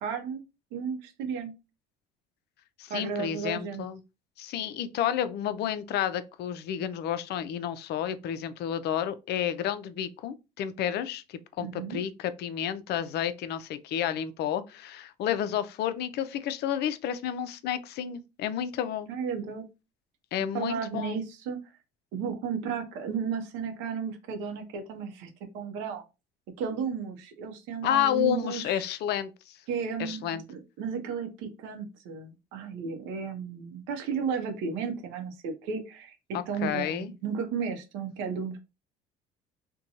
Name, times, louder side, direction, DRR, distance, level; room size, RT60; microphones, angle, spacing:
voice 1, 0.0-0.4 0.7-1.5 2.9-3.9 11.6-12.0 19.1-19.6 20.5-21.6 22.1-26.0 26.6-28.8 29.7-38.6, right 6 dB, 75° right, 0.7 m, -34 dB
voice 2, 2.8-4.0 4.4-19.1 20.3-21.2 27.8-29.6 30.0-30.4 36.3-37.1, left 10 dB, 55° left, 0.4 m, -31 dB
2.6 x 2.2 x 2.7 m
supercardioid pair, 75°, 20 cm